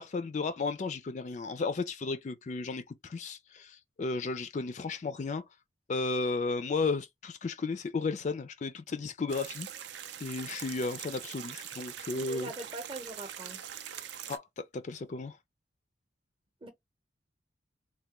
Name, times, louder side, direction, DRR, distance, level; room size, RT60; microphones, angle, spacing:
voice 1, 0.0-5.4 5.9-9.7 10.2-12.5 14.3-15.4, left 3 dB, 40° left, 0.3 m, -34 dB
sound 1, 9.3-14.4, right 10 dB, 60° right, 0.5 m, -43 dB
voice 2, 12.1-13.6 16.6-16.7, right 2 dB, 30° right, 0.8 m, -42 dB
3.3 x 2.2 x 2.9 m
head